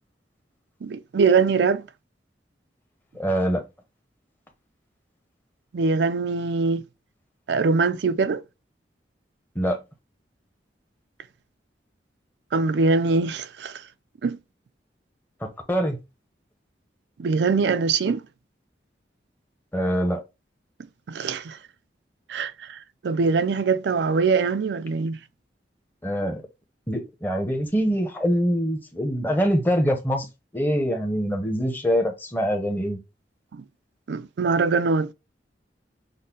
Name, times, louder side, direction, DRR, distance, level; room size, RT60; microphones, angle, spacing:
voice 1, 0.8-1.9 5.7-6.8 7.5-8.4 12.5-13.8 14.2-14.4 17.2-18.2 21.1-21.6 22.3-25.2 33.5-33.6 34.1-35.1, right 4 dB, 70° right, 0.4 m, -23 dB
voice 2, 3.1-3.6 9.5-9.8 15.4-16.0 19.7-20.2 26.0-26.4 26.9-30.3 30.5-33.0, equal, 10° left, 0.9 m, -24 dB
6.4 x 2.2 x 3.7 m
head